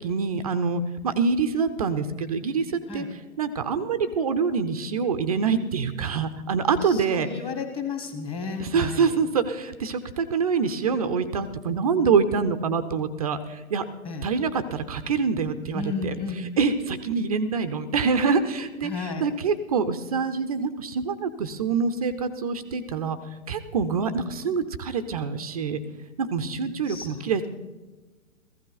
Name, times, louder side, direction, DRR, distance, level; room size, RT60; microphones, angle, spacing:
voice 1, 0.0-2.7 2.9-3.0 3.4-7.3 8.6-13.9 14.2-16.1 16.6-23.2 23.5-25.8 26.2-27.5, right 5 dB, 25° right, 11 dB, 0.5 m, -25 dB
voice 2, 6.8-9.2 14.0-14.3 15.7-16.5 18.8-19.3 26.9-27.5, left 5 dB, 10° left, 5 dB, 1.5 m, -33 dB
15.0 x 15.0 x 4.0 m, 1.2 s
figure-of-eight pair, 130°, 42 cm